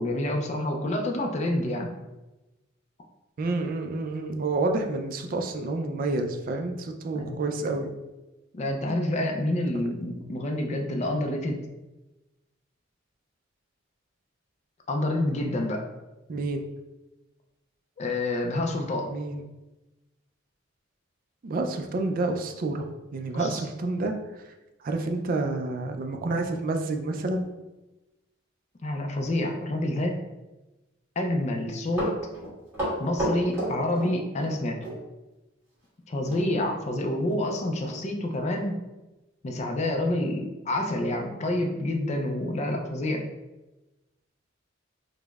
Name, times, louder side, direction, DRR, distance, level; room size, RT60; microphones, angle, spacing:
voice 1, 0.0-1.9 7.1-7.4 8.5-11.6 14.9-15.9 18.0-19.1 23.3-23.6 28.8-30.2 31.2-32.1 33.0-34.8 36.1-38.8 39.4-43.2, left 1 dB, 35° left, 3 dB, 0.4 m, -28 dB
voice 2, 3.4-7.9 16.3-16.6 19.0-19.4 21.4-24.1 24.8-27.5, right 2 dB, 45° right, 5 dB, 0.3 m, -29 dB
Run, 31.7-34.6 34.8-35.0 36.3-36.5 36.8-36.9 37.4-37.5 37.8-38.0 38.6-38.7, right 1 dB, 10° right, 1.4 m, -31 dB
4.9 x 2.1 x 2.3 m, 1.0 s
head